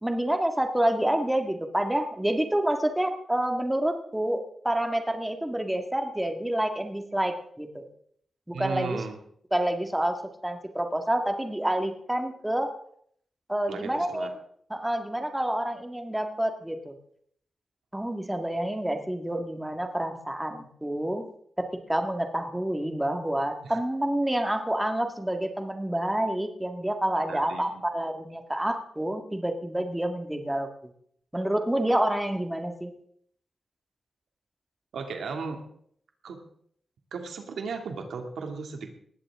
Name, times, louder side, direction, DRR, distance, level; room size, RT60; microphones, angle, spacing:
voice 1, 0.0-7.8 8.5-9.0 9.5-12.7 13.5-14.4 14.7-16.9 17.9-21.3 21.6-30.9 31.3-32.9, right 1 dB, 10° right, 5 dB, 1.9 m, -28 dB
voice 2, 8.5-9.1 13.7-14.3 23.6-23.8 27.3-27.8 34.9-35.6 36.2-36.4 37.1-38.9, right 5 dB, 90° right, 4 dB, 2.5 m, -35 dB
20.0 x 15.5 x 3.7 m, 0.64 s
cardioid pair, 95°, 0 cm